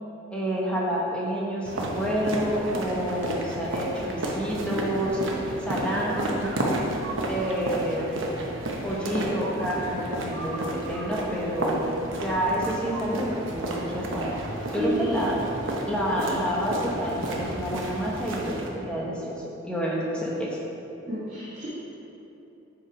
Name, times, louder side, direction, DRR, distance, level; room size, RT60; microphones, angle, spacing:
voice 1, 0.3-6.6 7.3-8.2 8.8-14.4 14.7-15.4 15.9-20.5, equal, 5° left, -4 dB, 1.0 m, -29 dB
sound 1, 1.7-18.7, right 1 dB, 70° right, 0.9 m, -32 dB
voice 2, 14.8-15.2 21.1-21.7, equal, 35° right, -12 dB, 1.6 m, -30 dB
6.6 x 4.9 x 4.7 m, 2.9 s
head